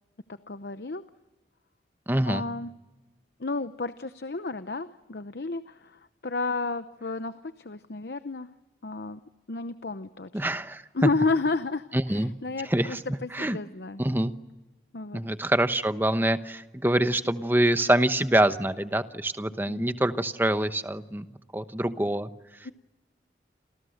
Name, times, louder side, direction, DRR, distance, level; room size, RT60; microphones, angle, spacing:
voice 1, 0.3-1.0 2.2-2.7 3.4-8.5 8.8-9.2 9.5-10.6 10.9-14.0 14.9-15.2 19.7-19.8 22.6-22.7, left 3 dB, 70° left, 11 dB, 0.8 m, -32 dB
voice 2, 2.1-2.4 10.3-11.1 11.9-12.3 12.7-13.0 13.3-13.6 14.0-14.3 15.1-21.2 21.5-22.3, right 1 dB, 10° right, 10 dB, 1.0 m, -25 dB
29.0 x 28.0 x 6.5 m, 1.1 s
head